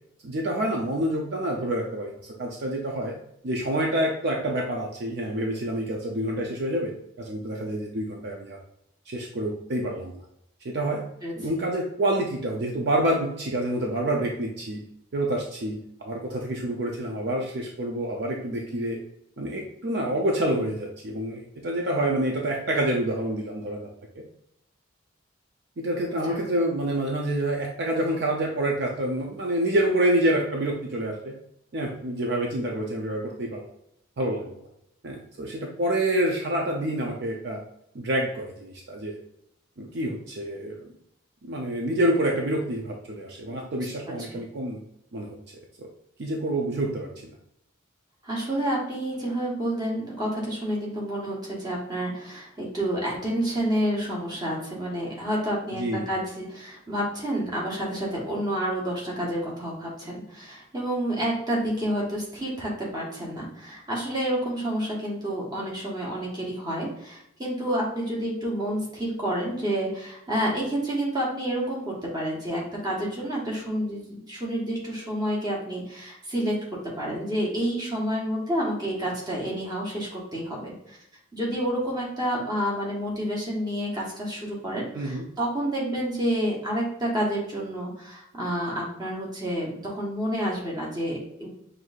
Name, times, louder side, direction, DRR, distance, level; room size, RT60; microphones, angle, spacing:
voice 1, 0.2-3.1 3.4-8.6 9.1-10.1 10.6-11.1 11.4-14.8 15.1-19.0 19.4-23.9 24.2-24.3 25.8-31.3 31.7-33.7 34.2-34.5 35.0-37.6 37.9-39.2 39.8-40.9 41.4-44.8 45.1-45.4 45.8-45.9 46.2-47.3 55.7-56.1 84.9-85.2, right 1 dB, 55° right, 0 dB, 0.5 m, -27 dB
voice 2, 48.2-76.5 77.0-81.0 81.3-91.5, right 1 dB, 20° right, -4 dB, 1.1 m, -29 dB
6.1 x 2.6 x 2.4 m, 0.77 s
head